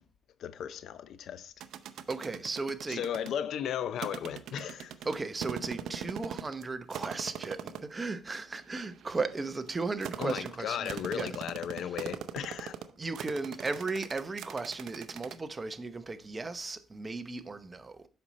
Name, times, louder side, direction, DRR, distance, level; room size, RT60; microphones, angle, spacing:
voice 1, 0.4-1.5 2.9-5.0 10.2-12.8, left 9 dB, 70° left, 0.6 m, -35 dB
sound 1, 1.6-3.3 4.0-6.6 6.9-7.9 8.6-15.4, right 9 dB, 75° right, 0.6 m, -41 dB
voice 2, 2.1-3.0 5.1-11.3 13.0-18.1, right 3 dB, 25° right, 0.9 m, -36 dB
7.8 x 5.6 x 4.2 m
cardioid pair, 90°, 0 cm